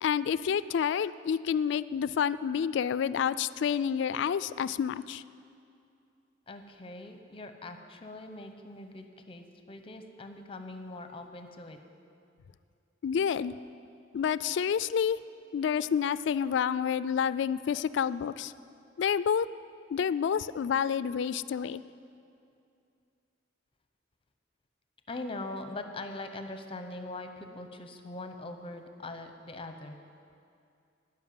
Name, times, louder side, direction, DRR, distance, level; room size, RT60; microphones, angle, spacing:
voice 1, 0.0-5.2 13.0-13.5 14.1-15.2 15.5-18.5 19.0-19.5 19.9-21.8, left 7 dB, 65° left, 16 dB, 0.3 m, -29 dB
voice 2, 6.5-11.8 25.1-30.0, left 2 dB, 30° left, 7 dB, 0.7 m, -42 dB
12.5 x 5.8 x 9.3 m, 2.5 s
head